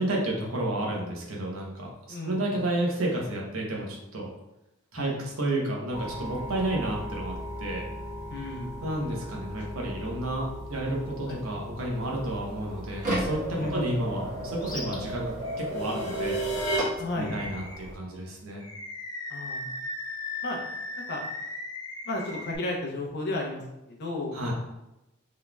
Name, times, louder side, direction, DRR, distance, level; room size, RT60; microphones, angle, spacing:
voice 1, 0.0-4.3 4.9-7.8 8.8-16.4 17.2-18.7 24.3-24.5, right 1 dB, 75° right, -1 dB, 0.9 m, -31 dB
voice 2, 2.1-2.5 5.0-5.2 8.3-8.8 10.0-10.1 11.3-11.4 13.6-14.0 17.0-17.3 19.3-19.7 20.4-20.6 21.1-21.2 22.0-23.6 24.0-24.3, left 2 dB, 55° left, -1 dB, 0.8 m, -33 dB
sound 1, 5.9-16.8, right 1 dB, 35° left, 1.2 m, -37 dB
sound 2, 11.9-17.9, right 1 dB, 40° right, 1.1 m, -35 dB
Animal, 14.6-15.0 15.4-15.6 17.2-17.9 18.6-22.6, left 2 dB, 20° left, 0.5 m, -37 dB
3.8 x 3.2 x 2.3 m, 0.93 s
head